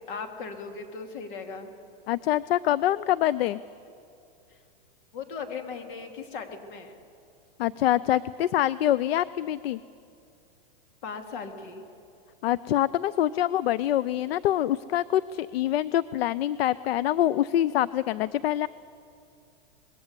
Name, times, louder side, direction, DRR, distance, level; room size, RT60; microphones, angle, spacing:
voice 1, 0.1-1.7 5.1-6.9 11.0-11.8, left 5 dB, 55° left, 4 dB, 3.1 m, -38 dB
voice 2, 2.1-3.6 7.6-9.8 12.4-18.7, left 12 dB, 75° left, 18 dB, 0.6 m, -25 dB
25.5 x 20.5 x 8.3 m, 2.5 s
supercardioid pair, 155°, 30 cm